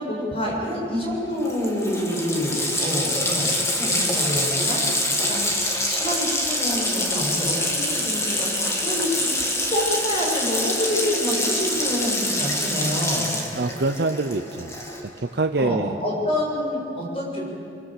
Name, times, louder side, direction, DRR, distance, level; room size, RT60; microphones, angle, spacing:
voice 1, 0.0-4.8 5.2-9.3 9.7-13.3 15.6-17.4, left 1 dB, 35° left, -2 dB, 7.5 m, -27 dB
Water tap faucet, 1.1-1.2 1.4-15.2, left 1 dB, 15° left, 2.5 m, -25 dB
voice 2, 13.5-14.8 15.2-16.0, right 3 dB, 60° right, 7 dB, 0.7 m, -25 dB
26.0 x 24.0 x 7.8 m, 2.6 s
head